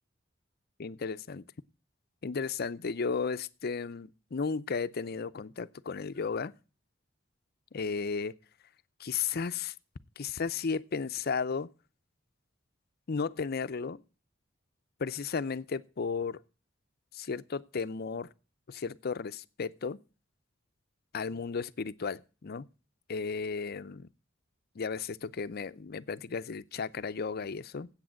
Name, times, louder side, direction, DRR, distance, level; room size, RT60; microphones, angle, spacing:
voice 1, 0.8-1.4 2.2-6.5 7.7-8.3 9.0-9.7 10.2-11.7 13.1-14.0 15.0-16.4 17.1-18.3 18.7-20.0 21.1-22.7 23.1-24.1 24.8-27.9, left 5 dB, 55° left, 0.5 m, -34 dB
8.7 x 8.3 x 9.1 m
head